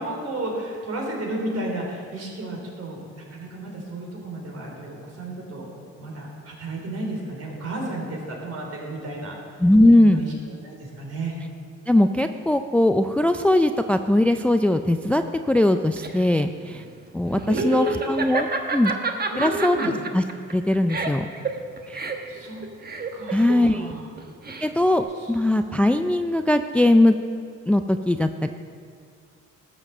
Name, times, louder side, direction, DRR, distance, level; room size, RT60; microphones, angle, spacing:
voice 1, 0.0-5.7 6.0-9.3 10.0-10.3 10.6-11.4 17.5-18.2 19.3-19.9 22.3-22.6 23.1-24.1 25.1-25.3, right 2 dB, 55° right, -1 dB, 3.6 m, -32 dB
voice 2, 9.6-10.2 11.9-16.8 17.1-18.9 19.4-19.8 20.1-20.2 20.5-21.3 21.9-22.0 23.3-23.9 24.6-27.2 27.7-28.5, left 1 dB, 5° left, 8 dB, 0.3 m, -20 dB
Laughter, 15.6-25.0, right 4 dB, 30° right, 1.2 m, -30 dB
12.5 x 7.4 x 6.7 m, 2.2 s
cardioid pair, 90°, 30 cm